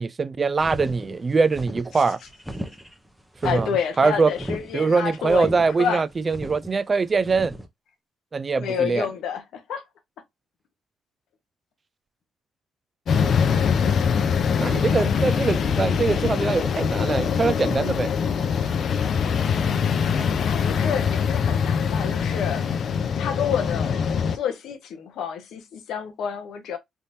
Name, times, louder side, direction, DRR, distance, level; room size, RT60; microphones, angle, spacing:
voice 1, 0.0-2.2 3.4-3.7 4.0-4.3 4.7-7.5 8.3-9.1 14.6-18.1, right 4 dB, 35° right, 0.3 m, -23 dB
sound 1, 0.6-7.7, equal, ahead, 0.8 m, -36 dB
voice 2, 3.4-6.0 8.6-9.8 20.4-22.6 23.2-24.0 24.3-26.8, left 7 dB, 80° left, 0.8 m, -29 dB
sound 2, 13.1-24.4, left 6 dB, 60° left, 0.4 m, -23 dB
3.4 x 2.8 x 2.6 m
cardioid pair, 90°, 0 cm